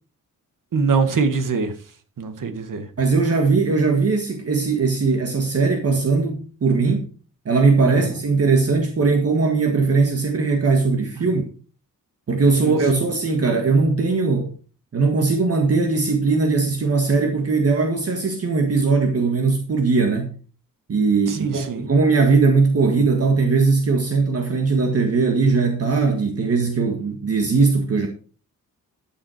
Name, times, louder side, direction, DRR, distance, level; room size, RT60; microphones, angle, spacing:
voice 1, 0.7-1.7 2.2-2.8 7.9-8.0 12.6-13.1 21.3-21.8, right 5 dB, 65° right, 1.8 m, -23 dB
voice 2, 3.0-7.1 7.5-11.5 12.3-14.5 14.9-20.4 20.9-28.1, right 4 dB, 45° right, 1.7 m, -19 dB
13.0 x 7.6 x 4.4 m
wide cardioid pair, 150°, 34 cm